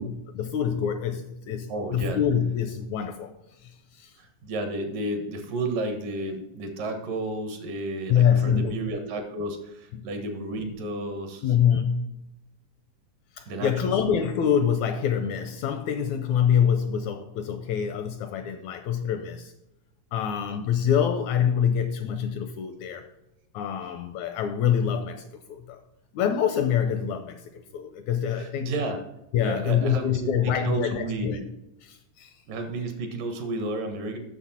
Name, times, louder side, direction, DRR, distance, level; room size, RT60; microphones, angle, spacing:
voice 1, 0.0-3.3 3.6-4.2 8.1-8.7 9.9-10.1 11.4-12.2 13.4-19.5 20.1-23.1 23.5-25.8 26.1-28.7 29.3-31.4 31.8-32.3, left 8 dB, 80° left, 1.7 m, -25 dB
voice 2, 1.7-2.2 4.2-11.5 13.5-13.9 28.4-29.0 29.4-31.4 32.5-34.2, right 2 dB, 80° right, 3.0 m, -32 dB
8.3 x 6.7 x 4.3 m
omnidirectional pair, 3.8 m